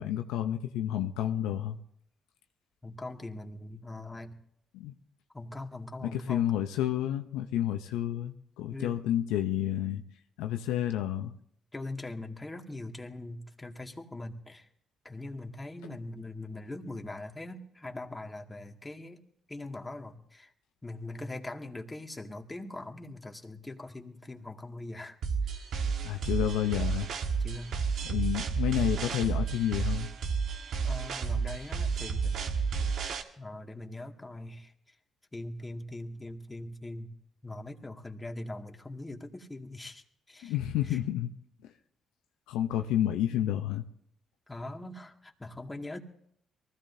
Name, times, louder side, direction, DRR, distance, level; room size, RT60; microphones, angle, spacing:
voice 1, 0.0-1.8 4.7-4.9 6.0-10.0 10.4-11.3 26.0-27.1 28.0-30.1 40.4-41.3 42.5-43.9, left 11 dB, 85° left, 6 dB, 0.8 m, -30 dB
voice 2, 2.8-4.4 5.3-6.6 8.7-9.0 11.7-14.7 15.0-19.2 19.5-20.5 20.8-25.2 25.4-25.8 27.4-28.1 30.8-32.6 33.4-34.7 35.3-37.1 37.4-40.6 40.9-41.0 44.5-46.0, left 2 dB, 20° left, 2 dB, 2.3 m, -42 dB
sound 1, 25.2-33.2, right 5 dB, 70° right, 1.6 m, -31 dB
23.0 x 16.0 x 2.8 m, 0.69 s
hypercardioid pair, 50°, 0 cm